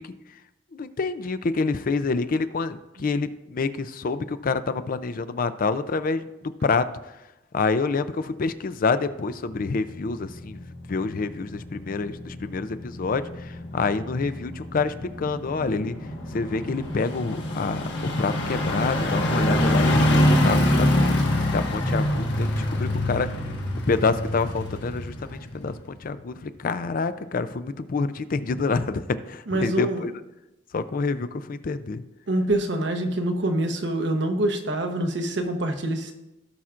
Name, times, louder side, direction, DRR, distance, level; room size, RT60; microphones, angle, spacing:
voice 1, 0.7-6.9 7.5-10.6 10.9-16.0 16.3-21.1 21.5-23.3 23.9-30.1 30.7-32.0, left 4 dB, 50° left, 12 dB, 0.4 m, -27 dB
sound 1, 9.5-26.1 26.4-26.5, left 1 dB, 65° left, 1.5 m, -26 dB
voice 2, 29.5-30.1 32.3-36.1, right 1 dB, 70° right, 5 dB, 1.0 m, -25 dB
17.0 x 5.7 x 2.5 m, 0.96 s
head